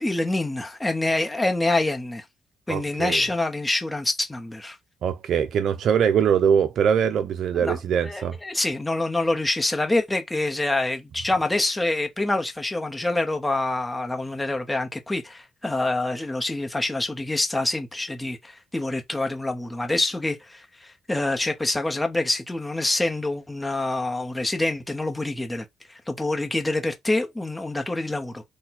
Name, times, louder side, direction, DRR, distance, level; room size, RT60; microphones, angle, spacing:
voice 1, 0.0-2.2 2.7-4.8 7.5-28.4, left 2 dB, 10° left, 0.8 m, -26 dB
voice 2, 2.7-3.2 5.0-8.4, right 8 dB, 65° right, 0.4 m, -22 dB
4.2 x 2.2 x 4.1 m
cardioid pair, 90°, 0 cm